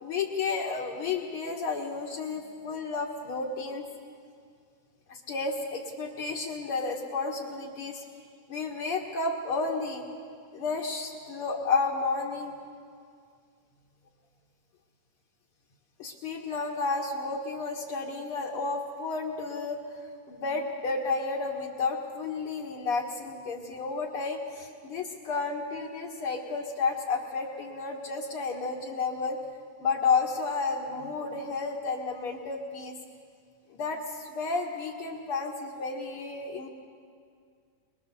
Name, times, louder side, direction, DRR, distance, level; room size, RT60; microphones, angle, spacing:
voice 1, 0.0-3.9 5.1-8.0 8.5-10.0 10.5-12.6 16.0-19.8 20.3-29.4 29.8-33.0 33.7-36.7, left 4 dB, 50° left, -2 dB, 2.0 m, -31 dB
23.5 x 21.5 x 6.9 m, 2.2 s
omnidirectional pair, 3.7 m